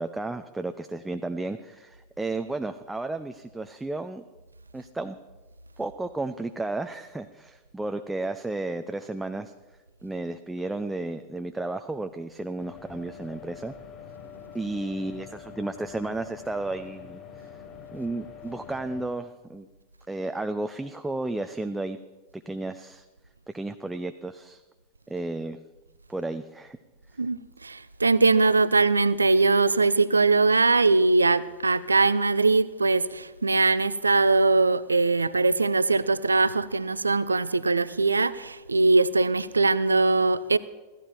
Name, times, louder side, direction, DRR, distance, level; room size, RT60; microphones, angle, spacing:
voice 1, 0.0-4.2 4.7-5.2 5.8-9.5 10.0-13.7 14.5-17.2 17.9-19.7 20.1-22.0 22.3-23.1 23.5-24.6 25.1-25.6 26.1-26.8, right 2 dB, 5° right, 0.5 m, -33 dB
sound 1, 12.6-19.1, left 7 dB, 30° left, 3.3 m, -45 dB
voice 2, 27.2-40.6, right 3 dB, 80° right, 0.5 m, -21 dB
16.0 x 14.5 x 4.5 m
figure-of-eight pair, 90°, 0 cm